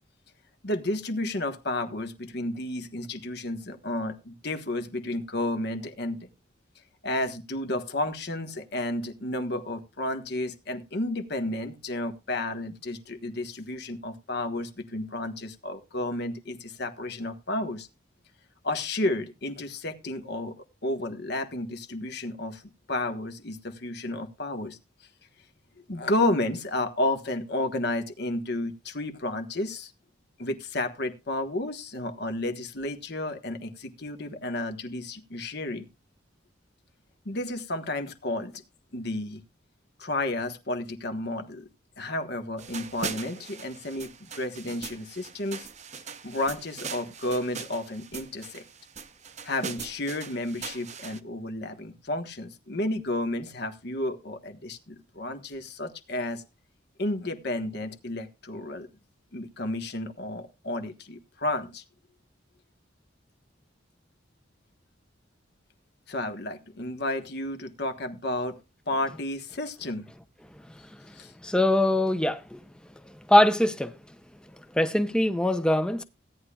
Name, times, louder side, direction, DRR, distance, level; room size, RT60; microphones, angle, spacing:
voice 1, 0.6-6.3 7.0-17.9 18.6-20.5 20.8-22.6 22.9-24.8 25.9-29.9 30.4-35.9 37.2-38.6 38.9-39.4 40.0-41.7 42.0-45.7 46.2-48.6 49.4-56.4 57.0-58.9 59.3-61.8 66.1-68.6 68.9-70.1 71.2-71.3, left 1 dB, 55° left, 1.4 m, -32 dB
sound 1, 42.6-51.2, right 5 dB, 35° right, 0.7 m, -40 dB
voice 2, 71.4-72.6 73.3-74.0 74.7-76.0, left 1 dB, 5° left, 0.7 m, -22 dB
16.5 x 10.0 x 2.4 m
head